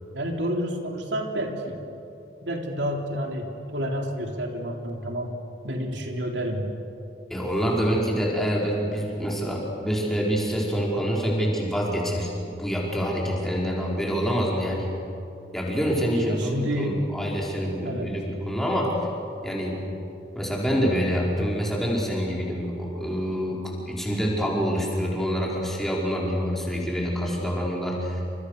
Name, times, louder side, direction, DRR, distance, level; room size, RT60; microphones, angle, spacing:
voice 1, 0.1-1.8 2.4-5.3 5.6-6.7 16.1-17.0 17.8-18.1, equal, 85° right, 2 dB, 3.6 m, -29 dB
voice 2, 7.3-14.9 15.5-18.9 19.4-19.8 20.3-28.2, equal, ahead, -4 dB, 5.2 m, -26 dB
29.5 x 27.5 x 6.7 m, 2.9 s
head